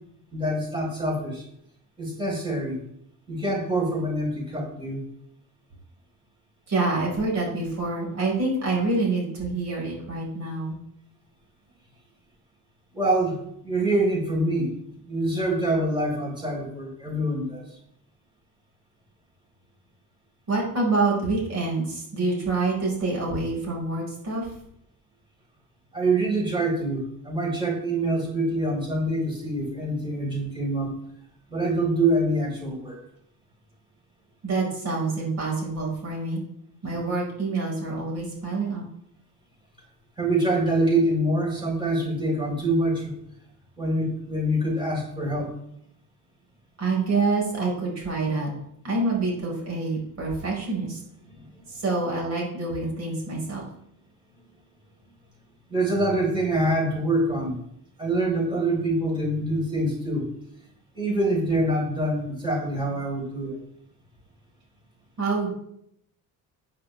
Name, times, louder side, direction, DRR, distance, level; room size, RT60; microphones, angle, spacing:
voice 1, 0.3-1.4 2.0-2.8 3.3-5.0 12.9-14.7 15.1-17.6 25.9-30.9 31.5-33.0 40.2-43.1 43.8-45.5 51.3-51.5 55.7-57.6 58.0-60.3 60.9-63.6, right 1 dB, 15° right, -2 dB, 4.4 m, -25 dB
voice 2, 6.7-10.8 20.5-24.5 34.4-36.4 36.8-38.8 46.8-48.5 48.8-51.0 51.7-53.6 65.2-65.5, right 3 dB, 50° right, -2 dB, 5.1 m, -26 dB
13.5 x 9.4 x 3.4 m, 0.73 s
cardioid pair, 175°, 35 cm